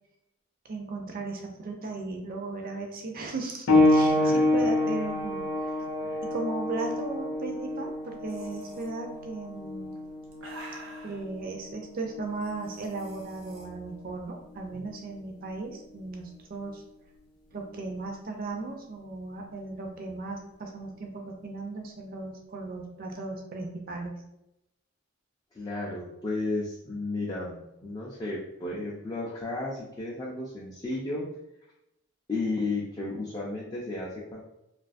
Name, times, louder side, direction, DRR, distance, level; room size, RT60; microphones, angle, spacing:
voice 1, 0.6-5.7 6.3-10.0 11.0-16.8 17.5-24.2, right 3 dB, 45° right, 2 dB, 0.4 m, -36 dB
sound 1, 3.7-13.9 14.8-15.0 15.7-15.8, left 1 dB, 90° left, 0.5 m, -28 dB
sound 2, 8.3-8.9 9.9-11.2 12.4-13.6, right 2 dB, 80° right, 0.7 m, -47 dB
voice 2, 25.5-31.2 32.3-34.4, left 2 dB, 20° left, -6 dB, 0.3 m, -33 dB
2.4 x 2.3 x 2.4 m, 0.85 s
head